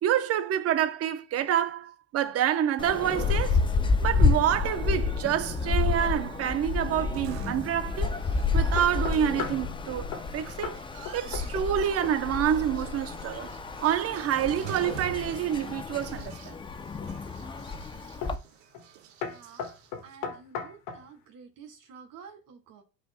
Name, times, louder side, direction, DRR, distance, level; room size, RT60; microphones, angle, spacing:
voice 1, 0.0-3.6 4.0-8.2 8.5-10.8 11.1-13.5 13.8-16.6, right 10 dB, 40° right, 0.8 m, -27 dB
sound 1, 2.8-18.4, left 4 dB, 15° left, 0.4 m, -29 dB
sound 2, 5.9-20.2, right 10 dB, 85° right, 0.9 m, -48 dB
sound 3, 8.8-9.7 10.1-10.3 10.6-10.8 11.0-11.8 12.0-12.4 15.7-16.4 17.0-17.4 18.2-18.5 18.7-18.9 19.2-21.1, left 7 dB, 65° left, 1.5 m, -37 dB
voice 2, 19.2-19.7 20.0-22.8, right 6 dB, 60° right, 2.5 m, -50 dB
12.0 x 5.0 x 2.2 m
supercardioid pair, 105°, 37 cm